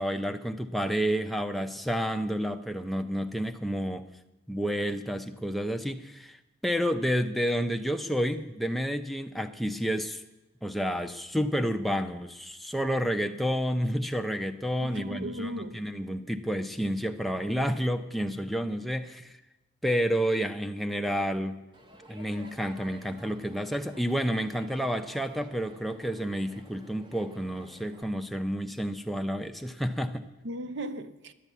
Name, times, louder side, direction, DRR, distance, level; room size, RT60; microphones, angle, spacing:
voice 1, 0.0-4.1 4.5-6.4 6.6-10.2 10.6-19.3 19.8-21.6 22.1-30.3, equal, ahead, 0.6 m, -30 dB
voice 2, 14.8-15.9 30.4-31.3, right 1 dB, 60° right, 0.8 m, -36 dB
Crowd, 21.7-28.0, equal, 25° right, 1.0 m, -52 dB
11.0 x 10.5 x 8.3 m
head